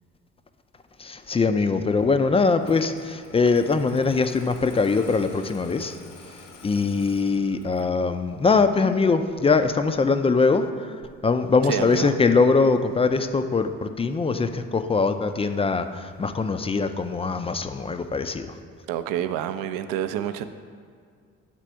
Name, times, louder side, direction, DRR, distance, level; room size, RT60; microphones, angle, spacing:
voice 1, 1.0-6.0 6.6-10.9 11.2-18.5, left 4 dB, 15° left, 9 dB, 0.3 m, -22 dB
Engine starting, 2.6-8.0, left 4 dB, 70° left, 0.9 m, -47 dB
voice 2, 11.7-12.2 18.9-20.5, right 10 dB, 60° right, 11 dB, 0.5 m, -28 dB
7.4 x 4.1 x 4.6 m, 2.1 s
hypercardioid pair, 45°, 38 cm